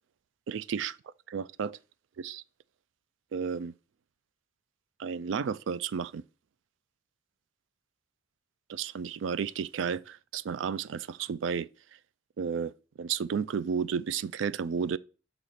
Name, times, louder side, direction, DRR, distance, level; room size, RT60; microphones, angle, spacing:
voice 1, 0.5-0.9 1.3-1.8 2.2-2.4 3.3-3.7 5.0-6.2 8.7-11.7 12.4-12.7 13.0-15.0, right 6 dB, 85° right, 0.4 m, -32 dB
6.5 x 3.0 x 5.7 m
head